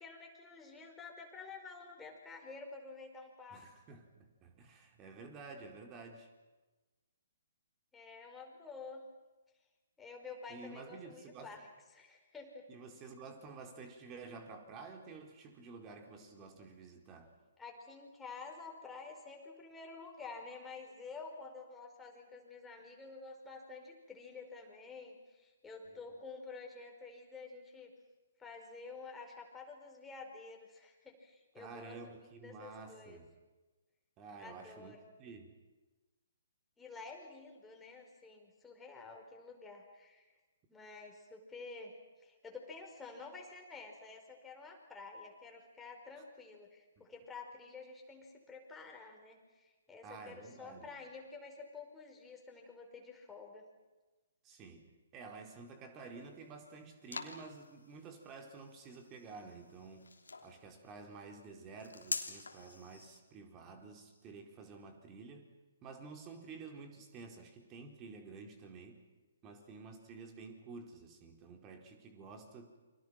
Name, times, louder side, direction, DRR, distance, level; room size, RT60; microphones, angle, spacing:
voice 1, 0.0-3.6 7.9-9.1 10.0-11.7 11.9-12.7 17.6-27.9 28.4-31.9 32.4-33.2 34.4-35.0 36.8-40.3 40.7-53.7, left 4 dB, 10° left, 1 dB, 5.1 m, -50 dB
voice 2, 3.5-6.3 10.5-11.5 12.7-17.3 31.6-33.3 34.2-35.6 47.0-47.1 50.0-50.9 54.4-54.9 55.1-60.1 60.4-65.5 65.8-69.0 69.4-72.8, right 4 dB, 25° right, 3 dB, 4.4 m, -51 dB
sound 1, 56.0-63.2, left 3 dB, 75° left, 3.1 m, -46 dB
29.5 x 26.0 x 6.0 m, 1.2 s
figure-of-eight pair, 130°, 0 cm